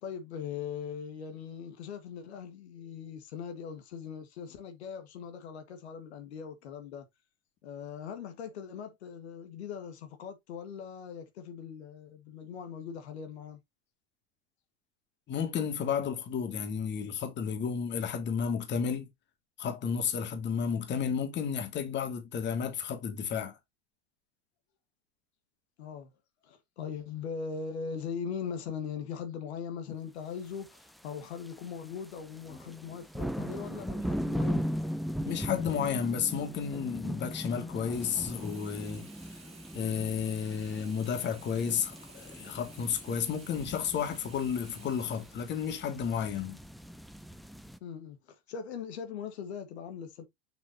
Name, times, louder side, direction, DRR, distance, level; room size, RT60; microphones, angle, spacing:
voice 1, 0.0-7.1 7.6-13.6 25.8-26.1 26.4-34.7 47.8-50.2, left 7 dB, 70° left, 1.8 m, -40 dB
voice 2, 15.3-19.1 19.6-23.6 35.3-39.4 39.7-46.6, left 7 dB, 30° left, 2.3 m, -32 dB
sound 1, 30.7-31.0 31.4-31.7 32.0-47.8, equal, ahead, 0.6 m, -38 dB
Sink (filling or washing), 37.8-46.1 46.6-46.7, right 4 dB, 20° right, 2.1 m, -54 dB
6.9 x 5.8 x 2.8 m
hypercardioid pair, 95°, 34 cm